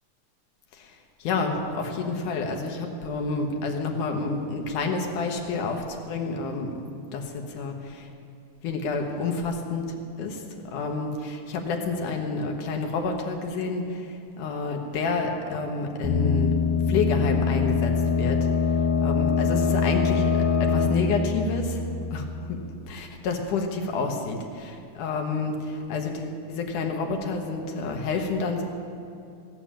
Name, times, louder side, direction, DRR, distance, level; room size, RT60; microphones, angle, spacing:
voice 1, 0.7-6.8 7.1-8.1 8.6-10.4 10.7-16.5 16.9-18.4 19.0-21.8 22.1-28.6, left 4 dB, 80° left, 3 dB, 2.9 m, -29 dB
sound 1, 16.0-22.6, left 5 dB, 65° left, 2.5 m, -24 dB
16.5 x 7.4 x 8.7 m, 2.6 s
omnidirectional pair, 3.5 m